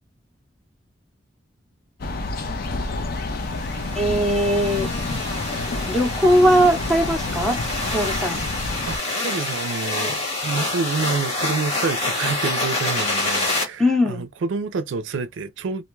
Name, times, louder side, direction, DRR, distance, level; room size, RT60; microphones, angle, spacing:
sound 1, 2.0-9.0, left 2 dB, 55° left, 0.5 m, -29 dB
sound 2, 3.2-13.6, left 2 dB, 35° left, 1.3 m, -27 dB
voice 1, 3.9-4.9 5.8-7.6 7.9-8.4 13.8-14.2, equal, ahead, 0.7 m, -19 dB
voice 2, 8.9-15.8, right 4 dB, 85° right, 0.4 m, -28 dB
2.5 x 2.2 x 3.1 m
head